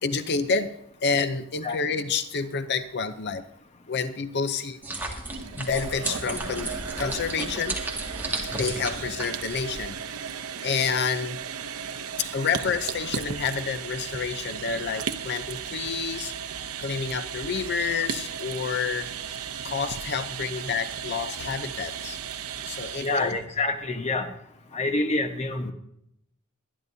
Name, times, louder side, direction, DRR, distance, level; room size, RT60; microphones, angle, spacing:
voice 1, 0.0-3.5 3.9-4.8 5.6-6.7 7.0-7.8 8.5-10.0 10.6-11.4 12.2-16.3 16.8-22.2 22.7-23.4, left 5 dB, 50° left, 11 dB, 0.7 m, -29 dB
sound 1, 4.8-9.9, right 2 dB, 10° right, 2.1 m, -34 dB
sound 2, 5.2-23.4, right 7 dB, 85° right, 0.7 m, -35 dB
voice 2, 23.0-24.3 24.7-25.7, left 2 dB, 30° left, 6 dB, 1.2 m, -27 dB
23.0 x 11.0 x 2.7 m, 0.72 s
head